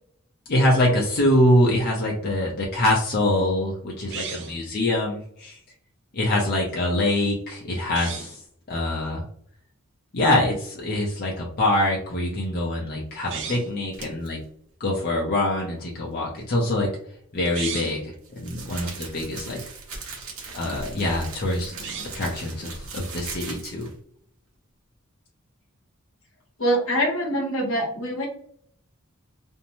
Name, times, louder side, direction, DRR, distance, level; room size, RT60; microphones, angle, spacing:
voice 1, 0.5-5.6 6.1-8.4 8.7-9.2 10.1-14.4 14.8-16.9 17.3-19.6 20.5-21.7 22.1-23.9, left 1 dB, 45° left, -3 dB, 0.6 m, -24 dB
sound 1, 4.1-4.7 7.8-8.4 13.2-13.8 17.4-18.1 21.7-22.3, right 6 dB, 60° right, 0.6 m, -35 dB
sound 2, 13.9-14.3 17.4-24.0, right 4 dB, 90° right, 0.9 m, -39 dB
voice 2, 26.6-28.3, equal, 70° left, 0 dB, 0.9 m, -24 dB
2.6 x 2.1 x 2.9 m, 0.64 s
head